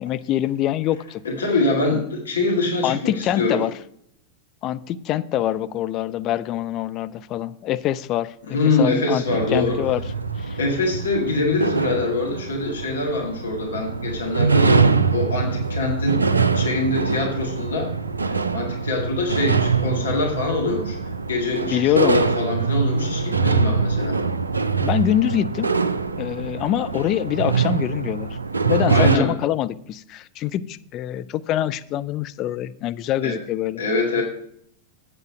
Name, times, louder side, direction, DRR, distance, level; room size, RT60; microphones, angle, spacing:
voice 1, 0.0-1.2 2.8-3.7 4.6-9.2 9.5-10.0 10.4-10.6 21.6-22.2 24.7-25.7 26.2-28.4 28.7-33.8, left 12 dB, 35° left, 0.4 m, -24 dB
voice 2, 1.3-3.7 8.4-9.8 10.6-16.3 16.5-17.9 18.5-24.2 28.9-29.3 33.2-33.4 33.8-34.2, left 3 dB, 70° left, 1.8 m, -24 dB
sound 1, 9.3-29.2, right 5 dB, 80° right, 0.4 m, -23 dB
8.0 x 7.9 x 5.0 m
figure-of-eight pair, 90°, 0 cm